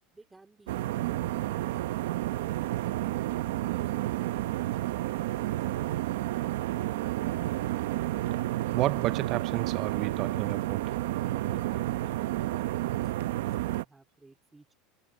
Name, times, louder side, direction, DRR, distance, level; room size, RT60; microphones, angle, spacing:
voice 1, 0.1-1.9 13.6-14.7, right 3 dB, 10° right, 3.0 m, -58 dB
sound 1, 0.7-13.8, right 15 dB, 90° right, 0.7 m, -31 dB
voice 2, 8.7-11.1, right 16 dB, 45° right, 0.4 m, -31 dB
supercardioid pair, 145°, 0 cm